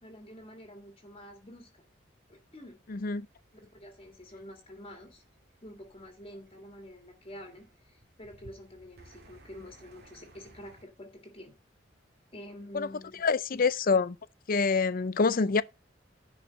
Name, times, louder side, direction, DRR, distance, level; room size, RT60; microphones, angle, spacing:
voice 1, 0.0-1.8 2.3-2.8 3.7-5.2 5.6-11.5 12.3-13.7, equal, 30° left, 2.0 m, -48 dB
voice 2, 2.9-3.3 12.7-12.9 13.2-14.2 14.5-15.6, left 4 dB, 50° left, 0.5 m, -26 dB
sound 1, 2.9-10.8, right 1 dB, 60° right, 2.4 m, -59 dB
11.0 x 4.9 x 5.3 m
head